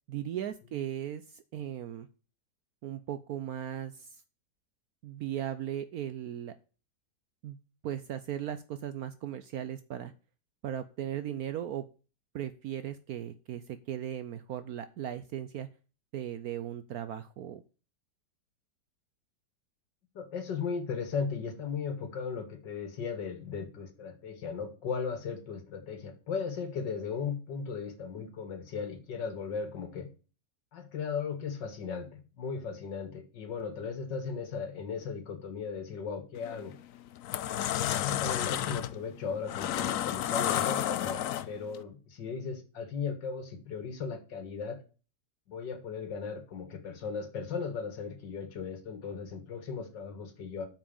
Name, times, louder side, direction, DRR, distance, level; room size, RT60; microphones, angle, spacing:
voice 1, 0.1-2.1 2.8-4.2 5.0-6.5 7.4-7.6 7.8-10.1 10.6-11.8 12.3-15.7 16.1-17.6, right 10 dB, 65° right, 12 dB, 1.0 m, -37 dB
voice 2, 20.1-30.1 30.7-36.8 37.8-44.8 45.5-50.7, left 5 dB, 85° left, 9 dB, 2.3 m, -37 dB
sound 1, 36.4-36.6 37.1-41.8, left 11 dB, 65° left, 0.8 m, -31 dB
8.6 x 6.1 x 7.1 m, 0.36 s
omnidirectional pair, 1.9 m